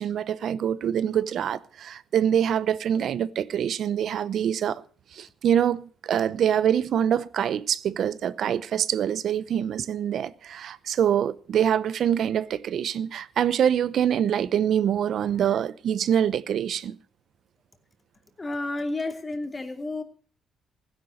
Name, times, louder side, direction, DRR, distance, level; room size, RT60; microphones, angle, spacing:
voice 1, 0.0-4.8 5.1-17.0, right 9 dB, 65° right, 0.8 m, -25 dB
voice 2, 18.4-20.0, left 2 dB, 25° left, 2.7 m, -31 dB
16.0 x 10.5 x 6.5 m
cardioid pair, 90°, 0 cm